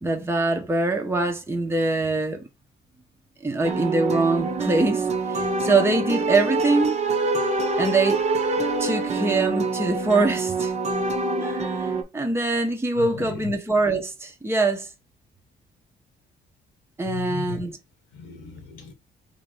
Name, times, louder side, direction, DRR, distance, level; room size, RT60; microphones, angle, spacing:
voice 1, 0.0-2.5 3.4-7.0 7.8-8.2 8.8-10.7 11.4-14.9 17.0-17.7, right 3 dB, 10° right, 0.9 m, -23 dB
sound 1, 3.6-12.0, right 3 dB, 35° right, 1.0 m, -25 dB
voice 2, 13.0-13.5 17.0-17.6 18.1-18.9, left 6 dB, 85° left, 1.0 m, -36 dB
3.6 x 2.8 x 3.5 m
cardioid pair, 90°, 20 cm